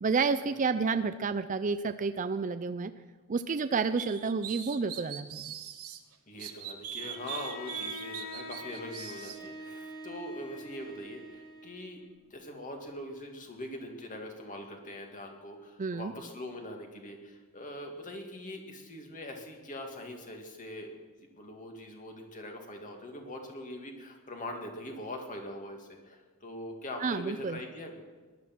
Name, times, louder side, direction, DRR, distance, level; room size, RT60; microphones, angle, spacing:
voice 1, 0.0-2.9 3.3-5.5 15.8-16.1 27.0-27.6, right 4 dB, 35° right, 10 dB, 0.4 m, -30 dB
sound 1, 4.0-6.0 6.4-9.4, right 10 dB, 80° right, 1.2 m, -41 dB
voice 2, 6.3-20.9 21.3-28.0, left 1 dB, 35° left, 2 dB, 2.4 m, -42 dB
Bowed string instrument, 7.0-12.0, left 1 dB, 65° left, 3.0 m, -45 dB
18.0 x 11.5 x 6.1 m, 1.4 s
head